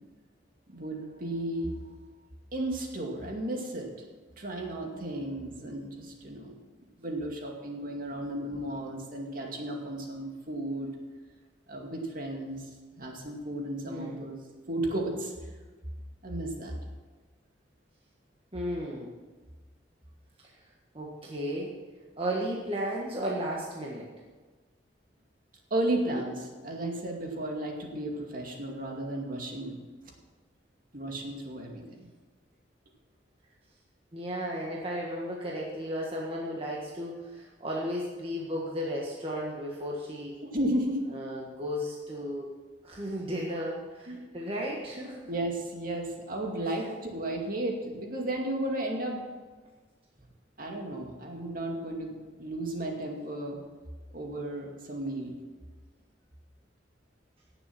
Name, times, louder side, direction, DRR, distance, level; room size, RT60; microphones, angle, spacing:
voice 1, 0.7-1.8 2.5-3.9 4.4-6.5 7.0-10.9 11.7-12.7 13.0-14.4 14.7-15.5 16.2-16.7 25.7-29.8 30.9-32.1 40.4-41.0 44.1-44.2 45.3-49.3 50.6-53.6 54.1-55.4, right 1 dB, 50° right, 1 dB, 2.3 m, -34 dB
voice 2, 13.9-14.2 18.5-19.1 20.9-21.7 22.2-24.1 34.1-40.3 41.1-42.5 42.8-45.3 46.8-46.9, equal, 30° right, -3 dB, 1.6 m, -34 dB
17.5 x 7.2 x 6.0 m, 1.3 s
head